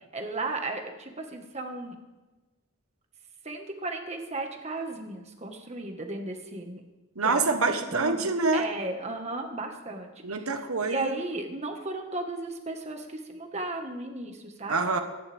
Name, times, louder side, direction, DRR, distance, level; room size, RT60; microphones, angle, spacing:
voice 1, 0.1-2.0 3.4-6.8 7.2-7.6 7.9-10.5 10.8-14.8, right 2 dB, 30° right, 3 dB, 1.6 m, -35 dB
voice 2, 7.2-8.6 10.2-11.2 14.7-15.0, right 3 dB, 75° right, 6 dB, 1.3 m, -26 dB
26.5 x 11.0 x 3.6 m, 1.1 s
head